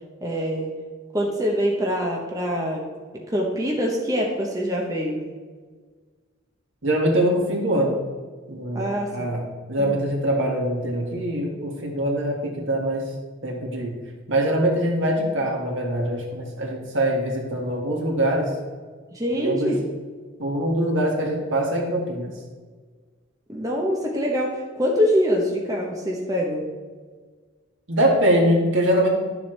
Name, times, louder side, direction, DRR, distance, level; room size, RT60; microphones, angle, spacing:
voice 1, 0.2-0.7 1.1-2.9 3.1-5.2 8.7-9.3 9.8-10.0 19.1-19.8 23.5-26.7, equal, 15° right, -1 dB, 1.0 m, -24 dB
voice 2, 6.8-8.0 8.5-13.1 13.4-14.0 14.3-18.5 19.4-19.8 20.4-22.4 27.9-29.1, right 1 dB, 70° right, -1 dB, 2.0 m, -23 dB
11.0 x 7.1 x 3.3 m, 1.5 s
head